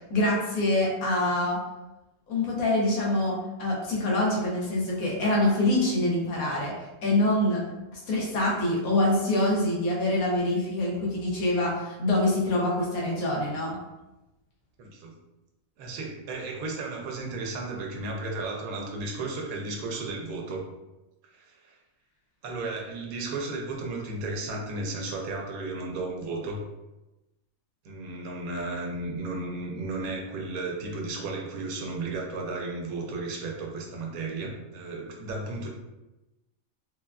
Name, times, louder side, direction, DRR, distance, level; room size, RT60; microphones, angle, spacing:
voice 1, 0.1-1.6 2.3-6.7 7.0-7.6 7.9-13.8, left 1 dB, 80° left, -4 dB, 1.2 m, -25 dB
voice 2, 14.8-15.2 15.8-20.6 21.3-21.8 22.4-26.6 27.8-35.7, right 2 dB, 85° right, 1 dB, 1.1 m, -34 dB
3.2 x 2.3 x 2.2 m, 0.99 s
omnidirectional pair, 1.5 m